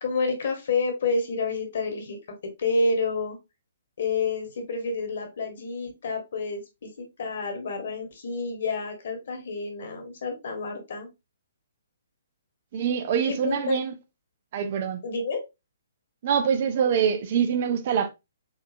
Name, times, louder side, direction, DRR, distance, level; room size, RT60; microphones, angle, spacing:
voice 1, 0.0-3.4 4.0-11.1 13.2-13.8 15.0-15.4, left 3 dB, 50° left, 1.5 m, -29 dB
voice 2, 12.7-13.9 14.5-15.0 16.2-18.1, right 7 dB, 40° right, 0.7 m, -24 dB
4.4 x 3.6 x 2.7 m
figure-of-eight pair, 125°, 0 cm